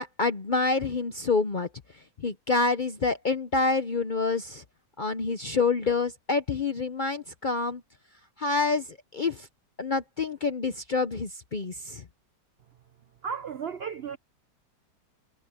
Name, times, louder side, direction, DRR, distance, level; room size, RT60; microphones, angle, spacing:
voice 1, 0.0-1.7 2.2-4.6 5.0-7.8 8.4-9.5 9.8-12.0, left 4 dB, 55° left, 0.5 m, -27 dB
voice 2, 13.2-14.2, right 6 dB, 80° right, 0.5 m, -34 dB
omnidirectional pair, 1.9 m